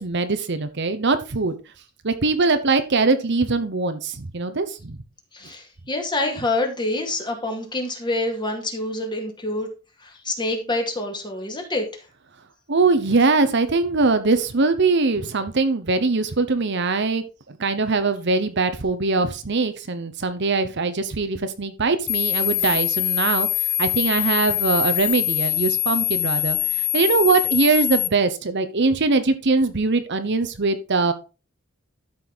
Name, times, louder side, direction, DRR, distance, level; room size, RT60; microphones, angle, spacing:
voice 1, 0.0-1.6 2.0-5.0 12.7-23.5 23.8-31.1, right 3 dB, 55° right, 10 dB, 1.0 m, -22 dB
voice 2, 5.3-9.7 10.0-12.1, left 2 dB, 20° left, 3 dB, 2.3 m, -27 dB
sound 1, 22.1-28.1, left 15 dB, 65° left, 0.7 m, -23 dB
12.5 x 5.6 x 4.1 m, 0.31 s
head